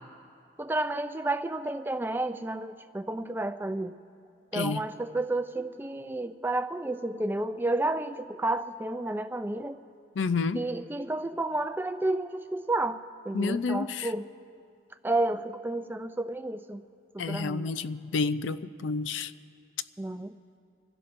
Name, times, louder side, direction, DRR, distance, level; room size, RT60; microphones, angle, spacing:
voice 1, 0.6-4.0 4.5-9.8 10.5-14.3 15.0-16.8 17.1-17.7 20.0-20.4, right 2 dB, 10° right, 9 dB, 0.4 m, -31 dB
voice 2, 10.2-10.6 13.3-14.1 17.2-19.3, left 4 dB, 85° left, 14 dB, 0.5 m, -29 dB
26.5 x 16.0 x 2.6 m, 2.5 s
head